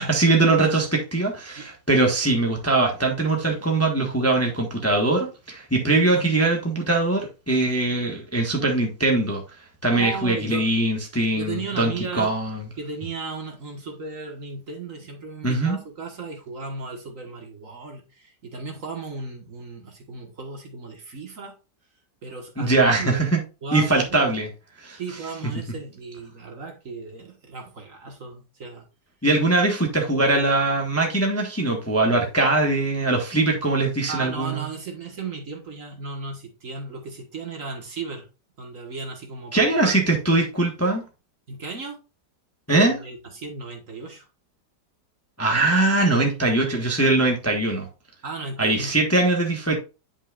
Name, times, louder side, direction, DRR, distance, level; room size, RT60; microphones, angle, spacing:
voice 1, 0.0-9.4 9.8-12.6 15.4-15.8 22.6-23.4 23.7-24.5 24.8-25.0 29.2-34.6 39.5-41.0 42.7-43.0 45.4-47.9 48.6-49.8, right 2 dB, 10° left, 1.1 m, -21 dB
voice 2, 9.9-10.7 11.4-12.4 12.8-21.5 22.2-23.2 23.6-24.4 25.0-28.9 34.1-38.3 38.6-40.0 41.5-42.0 42.7-44.3 48.2-49.0, right 4 dB, 50° right, 1.8 m, -35 dB
9.7 x 5.4 x 2.4 m
omnidirectional pair, 1.9 m